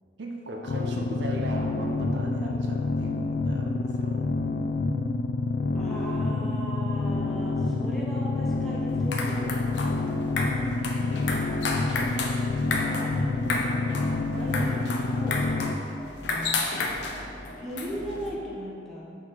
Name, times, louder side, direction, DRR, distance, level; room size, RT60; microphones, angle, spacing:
voice 1, 0.2-4.3 14.3-14.6, right 1 dB, 80° right, 1 dB, 0.8 m, -38 dB
sound 1, 0.7-15.8, left 3 dB, 50° left, 0.3 m, -28 dB
voice 2, 5.7-9.6 10.8-11.4 12.7-15.5 16.2-16.7 17.6-19.0, equal, ahead, -7 dB, 1.2 m, -38 dB
sound 2, 8.9-18.3, left 3 dB, 75° left, 0.7 m, -32 dB
5.9 x 4.7 x 5.6 m, 2.4 s
head